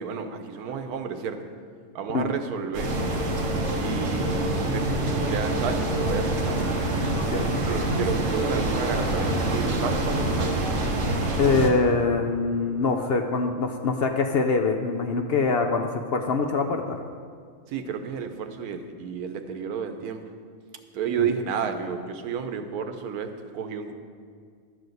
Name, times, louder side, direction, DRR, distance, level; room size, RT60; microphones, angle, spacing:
voice 1, 0.0-1.4 1.9-2.9 3.8-6.7 7.6-10.6 17.7-20.2 20.9-23.9, right 6 dB, 90° right, 8 dB, 1.3 m, -31 dB
sound 1, 2.7-11.7, right 1 dB, 55° right, 1.4 m, -26 dB
voice 2, 11.4-17.0 21.2-21.3, left 4 dB, 55° left, 4 dB, 0.7 m, -24 dB
11.5 x 4.8 x 7.8 m, 2.1 s
omnidirectional pair, 1.5 m